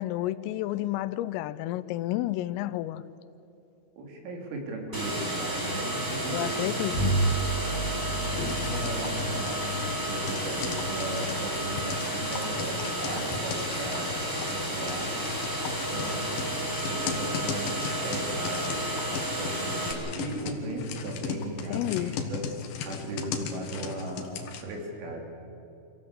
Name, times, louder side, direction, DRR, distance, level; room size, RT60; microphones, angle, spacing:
voice 1, 0.0-3.0 6.3-7.1 21.7-22.1, left 15 dB, 85° left, 16 dB, 3.2 m, -30 dB
voice 2, 4.0-6.6 6.9-7.2 8.2-14.1 14.5-15.1 15.7-17.8 18.0-18.8 19.3-22.5 22.9-25.2, right 2 dB, 70° right, 1 dB, 5.6 m, -37 dB
sound 1, 4.9-19.9, right 1 dB, 5° right, 3.1 m, -32 dB
Bowed string instrument, 6.9-12.6, right 2 dB, 40° left, 2.9 m, -33 dB
sound 2, 8.4-24.6, left 6 dB, 65° left, 2.4 m, -37 dB
26.0 x 16.0 x 8.1 m, 2.9 s
omnidirectional pair, 5.9 m